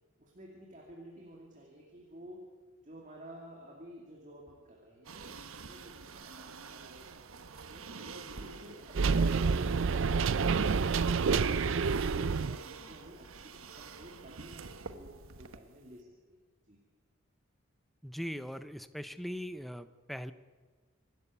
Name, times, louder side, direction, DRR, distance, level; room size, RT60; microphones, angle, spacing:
voice 1, 0.2-2.5 2.8-7.9 8.3-10.6 12.4-16.4 16.7-16.8, equal, 35° right, -1 dB, 2.4 m, -52 dB
sound 1, 5.0-15.6, right 5 dB, 80° right, 1.1 m, -48 dB
sound 2, 8.9-12.6, right 5 dB, 65° right, 0.5 m, -28 dB
voice 2, 18.0-20.3, equal, ahead, 12 dB, 0.5 m, -40 dB
25.5 x 12.5 x 8.3 m, 1.4 s
head